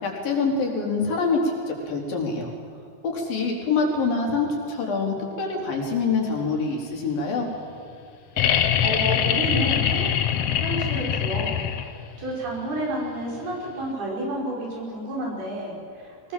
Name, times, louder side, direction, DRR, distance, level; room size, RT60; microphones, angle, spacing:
voice 1, 0.0-1.4 1.7-2.5 3.0-7.5, left 4 dB, 65° left, -1 dB, 5.5 m, -25 dB
sound 1, 8.4-12.1 13.8-13.9, left 9 dB, 90° left, 1.3 m, -23 dB
voice 2, 8.5-10.1 10.6-11.6 12.2-16.3, right 1 dB, 70° right, -2 dB, 7.5 m, -30 dB
23.5 x 20.5 x 7.6 m, 2.6 s
omnidirectional pair, 4.5 m